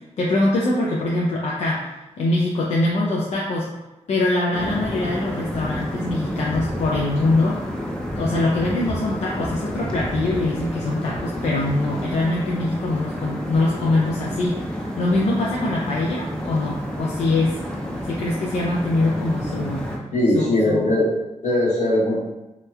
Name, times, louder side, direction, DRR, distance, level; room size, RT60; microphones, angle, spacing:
voice 1, 0.2-1.9 2.2-3.7 4.1-7.6 8.2-14.7 15.0-17.6 18.1-19.9 20.3-20.9, left 2 dB, 65° left, -4 dB, 0.4 m, -23 dB
sound 1, 4.5-20.0, equal, 5° left, 0.4 m, -30 dB
voice 2, 20.1-21.1 21.4-22.2, left 1 dB, 85° left, -7 dB, 0.9 m, -19 dB
2.8 x 2.1 x 2.3 m, 0.99 s
wide cardioid pair, 105°, 12 cm